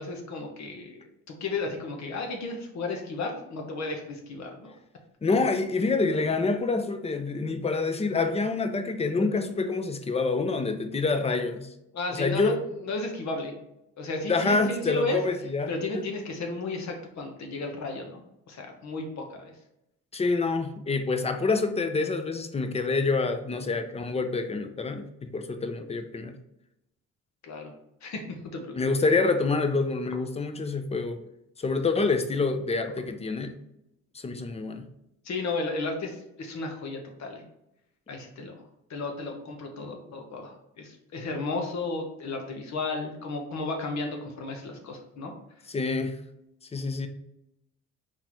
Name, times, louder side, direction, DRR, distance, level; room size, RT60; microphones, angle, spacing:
voice 1, 0.0-4.7 11.9-12.6 12.8-13.5 14.0-15.2 15.7-18.2 18.5-19.5 27.4-27.7 28.0-28.8 35.2-37.4 38.1-38.6 38.9-45.3, left 3 dB, 65° left, 1.1 m, -33 dB
voice 2, 5.2-11.7 12.1-12.6 14.3-15.7 20.1-26.3 28.8-31.2 31.6-33.5 34.1-34.8 45.7-46.2 46.7-47.1, left 3 dB, 20° left, 0.6 m, -27 dB
4.4 x 3.8 x 3.0 m
cardioid pair, 90°, 30 cm